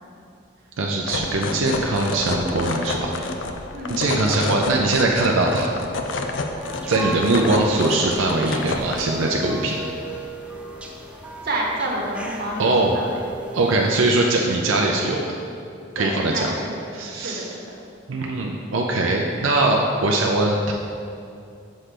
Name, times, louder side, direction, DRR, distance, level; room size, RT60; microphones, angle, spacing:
voice 1, 0.8-3.2 3.9-5.7 6.9-9.8 12.6-12.9 13.5-15.3 16.0-16.5 16.9-17.4 18.1-20.7, right 2 dB, 90° right, 0 dB, 0.5 m, -21 dB
sound 1, 1.0-9.0, left 3 dB, 70° left, 0.5 m, -29 dB
voice 2, 3.7-4.4 7.3-7.4 11.4-13.2 13.6-13.9 16.0-16.6 17.1-17.8, right 1 dB, 55° right, -2 dB, 1.1 m, -29 dB
sound 2, 6.6-14.0, right 1 dB, 5° right, 0.4 m, -36 dB
6.2 x 3.3 x 5.8 m, 2.5 s
head